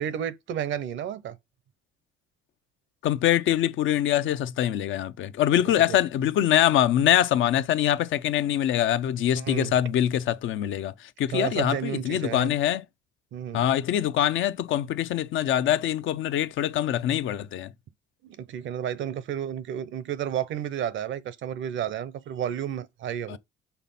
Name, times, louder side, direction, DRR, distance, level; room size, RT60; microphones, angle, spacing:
voice 1, 0.0-1.4 5.6-6.0 9.3-9.8 11.3-12.5 13.3-13.7 18.2-23.4, right 9 dB, 75° right, 0.8 m, -32 dB
voice 2, 3.0-12.8 13.5-17.7 23.3-23.4, left 11 dB, 75° left, 0.6 m, -24 dB
5.7 x 4.1 x 5.6 m
cardioid pair, 90°, 20 cm